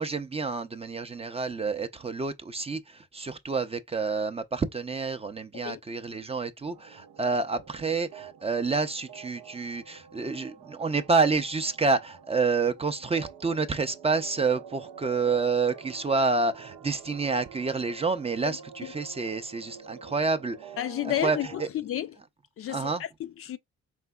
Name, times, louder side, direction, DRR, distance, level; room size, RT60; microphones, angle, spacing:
voice 1, 0.0-20.8 21.0-21.7 22.7-23.0, right 4 dB, 20° right, 0.4 m, -28 dB
sound 1, 6.7-21.7, right 7 dB, 85° right, 0.5 m, -48 dB
voice 2, 20.8-22.1 22.6-23.6, left 12 dB, 50° left, 0.4 m, -31 dB
4.8 x 3.4 x 2.2 m
cardioid pair, 90°, 30 cm